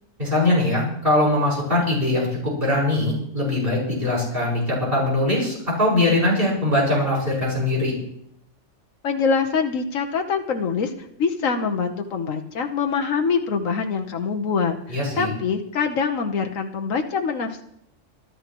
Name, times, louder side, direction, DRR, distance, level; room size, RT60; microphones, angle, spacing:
voice 1, 0.2-7.9 14.9-15.3, left 1 dB, 45° right, -5 dB, 5.8 m, -21 dB
voice 2, 9.0-10.9 11.2-17.6, left 5 dB, 80° left, 4 dB, 1.4 m, -24 dB
25.5 x 12.0 x 3.0 m, 0.73 s
omnidirectional pair, 1.3 m